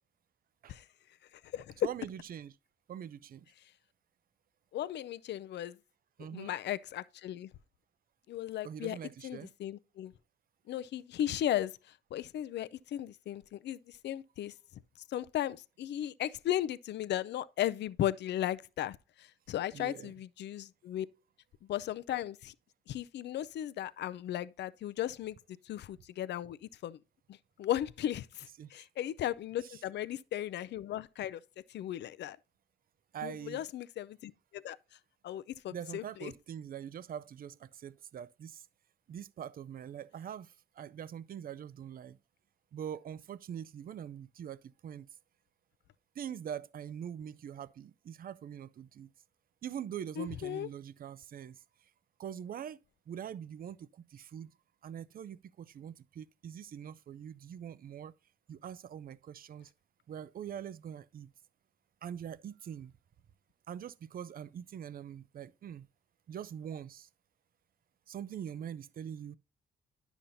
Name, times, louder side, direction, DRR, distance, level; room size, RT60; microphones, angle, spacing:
voice 1, 1.8-2.5 2.9-3.5 6.2-6.5 8.6-9.5 19.7-20.1 28.6-28.9 29.6-29.8 33.1-33.6 35.7-38.7 39.1-42.2 42.7-45.1 46.1-49.1 49.6-51.9 52.2-52.8 53.1-54.6 54.8-58.1 58.5-59.7 60.1-61.3 62.0-62.9 63.7-65.9 66.3-67.1 68.1-69.4, right 9 dB, 45° right, 0.5 m, -43 dB
voice 2, 4.7-5.8 6.3-7.5 8.3-9.0 9.2-10.1 10.7-11.8 12.1-14.5 15.1-21.1 21.7-22.5 22.9-25.4 25.7-27.0 27.3-31.4 31.7-32.4 33.2-34.8 35.2-36.3 50.2-50.7, left 12 dB, 60° left, 0.5 m, -36 dB
10.0 x 7.1 x 2.6 m
cardioid pair, 90°, 20 cm